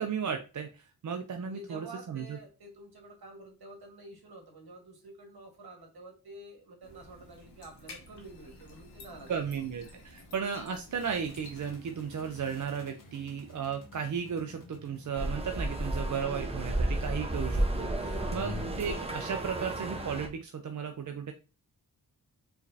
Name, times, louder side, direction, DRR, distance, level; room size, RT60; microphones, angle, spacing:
voice 1, 0.0-2.4 9.3-21.3, right 7 dB, 50° right, 5 dB, 0.5 m, -35 dB
voice 2, 1.4-9.3, right 2 dB, 65° right, 2 dB, 1.5 m, -49 dB
sound 1, 6.8-12.8, left 2 dB, 80° left, 1.3 m, -52 dB
sound 2, 10.9-16.0, equal, 50° left, 1.3 m, -53 dB
sound 3, 15.2-20.3, right 1 dB, 15° right, 0.8 m, -32 dB
4.7 x 3.1 x 2.7 m, 0.32 s
cardioid pair, 65°, 40 cm